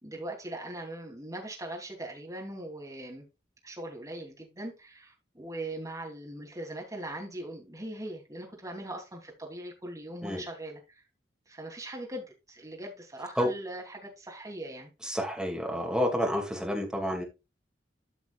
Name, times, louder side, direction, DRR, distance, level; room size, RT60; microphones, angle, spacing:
voice 1, 0.0-3.2 3.6-11.0 11.5-14.9, right 1 dB, 20° right, 3.1 m, -40 dB
voice 2, 15.0-17.2, equal, 5° right, 2.4 m, -29 dB
13.5 x 6.1 x 2.4 m
head